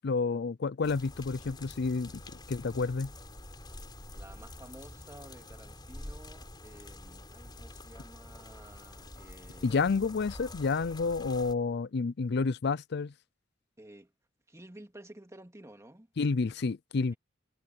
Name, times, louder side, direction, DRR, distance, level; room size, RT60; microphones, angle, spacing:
voice 1, 0.0-2.2 2.5-3.1 9.6-13.1 16.2-17.1, left 4 dB, 55° left, 0.5 m, -30 dB
sound 1, 0.8-11.5, left 1 dB, 25° left, 4.6 m, -47 dB
voice 2, 4.1-9.9 13.8-14.1 14.5-16.1, right 1 dB, 15° right, 2.4 m, -52 dB
head